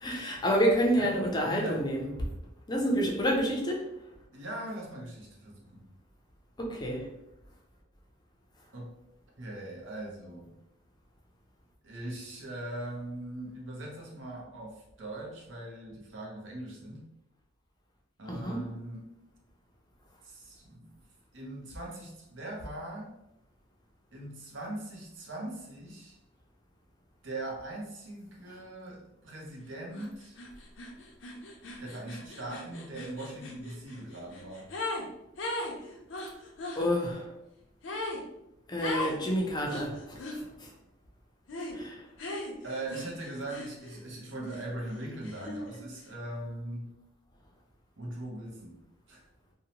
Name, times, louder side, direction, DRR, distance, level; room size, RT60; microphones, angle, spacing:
voice 1, 0.0-2.1 2.7-3.9 6.6-7.0 18.3-18.6 36.8-37.2 38.7-40.2 41.7-42.0, equal, 20° left, 0.5 m, -28 dB
voice 2, 1.4-1.9 3.0-3.1 4.3-5.9 8.7-8.9 9.4-10.5 11.8-17.1 18.2-19.1 20.2-20.9 21.3-23.1 24.1-26.2 27.2-30.4 31.8-34.7 42.6-46.9 48.0-48.8 49.1-49.2, right 1 dB, 75° right, 0.7 m, -40 dB
sound 1, 29.9-30.1 30.4-35.1 35.4-36.8 37.8-38.2 38.8-39.2 39.7-40.4 41.5-41.8 42.2-44.0 44.4-45.8, left 2 dB, 80° left, 0.5 m, -38 dB
2.7 x 2.1 x 2.8 m
head